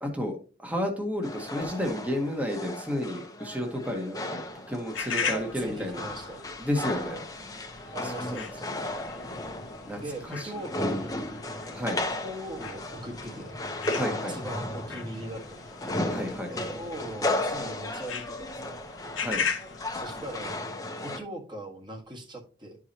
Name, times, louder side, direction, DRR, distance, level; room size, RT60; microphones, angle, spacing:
voice 1, 0.0-6.0 6.4-7.2 7.8-8.7 9.9-10.5 11.7-12.0 13.9-14.4 16.1-16.5 19.2-19.4, equal, 10° right, 2 dB, 1.2 m, -32 dB
sound 1, 1.2-21.2, left 1 dB, 20° left, 0.9 m, -35 dB
sound 2, 4.9-20.5, left 6 dB, 80° left, 0.9 m, -39 dB
voice 2, 5.2-6.4 7.9-8.7 10.0-11.3 12.2-13.6 14.1-15.8 16.5-18.8 19.9-20.6 21.0-22.8, right 1 dB, 25° right, 1 dB, 1.5 m, -40 dB
11.5 x 4.8 x 2.9 m, 0.36 s
head